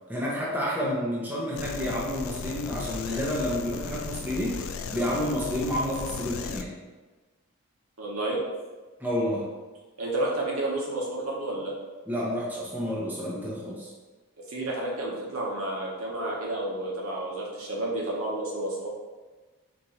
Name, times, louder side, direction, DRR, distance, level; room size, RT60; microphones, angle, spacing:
voice 1, 0.1-4.6 4.9-6.7 9.0-9.5 12.1-13.9, equal, 10° right, -6 dB, 0.8 m, -29 dB
sound 1, 1.6-6.6, left 5 dB, 75° left, 0.3 m, -36 dB
voice 2, 8.0-8.4 10.0-11.7 14.4-18.9, right 2 dB, 80° right, -3 dB, 1.1 m, -31 dB
4.5 x 2.6 x 4.1 m, 1.3 s
head